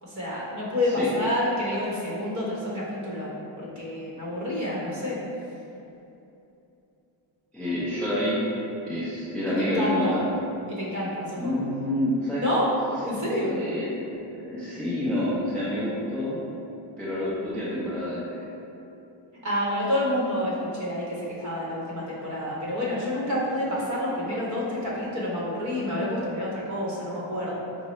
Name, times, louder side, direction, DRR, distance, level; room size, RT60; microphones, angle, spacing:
voice 1, 0.0-3.3 3.6-5.2 9.5-10.2 10.7-11.6 12.4-12.7 13.0-13.5 19.4-27.6, left 1 dB, 35° right, -6 dB, 1.1 m, -28 dB
voice 2, 7.5-8.4 8.9-10.3 11.4-12.4 13.1-14.0 14.4-16.4 17.0-18.2, left 1 dB, 5° left, -9 dB, 0.3 m, -28 dB
4.5 x 2.0 x 4.2 m, 2.8 s
cardioid pair, 160°, 48 cm